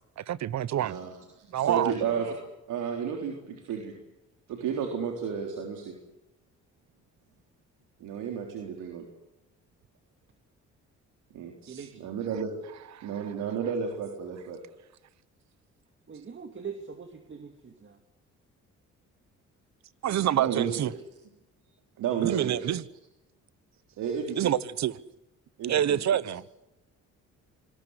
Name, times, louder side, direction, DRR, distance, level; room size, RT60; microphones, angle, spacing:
voice 1, 0.2-1.0 1.5-1.9 13.0-13.1 20.0-20.9 22.2-22.8 24.4-24.9 25.7-26.4, right 11 dB, 65° right, 1.2 m, -27 dB
voice 2, 0.7-1.1 1.6-2.3 2.7-3.9 4.5-5.9 8.0-9.1 11.3-11.5 12.0-12.5 13.0-14.6 20.3-20.7 22.0-22.7 24.0-24.5 25.6-26.0, right 7 dB, 85° right, 3.8 m, -32 dB
voice 3, 11.7-12.1 16.1-18.0, right 6 dB, 40° right, 2.7 m, -42 dB
26.5 x 20.5 x 8.2 m
cardioid pair, 90°, 30 cm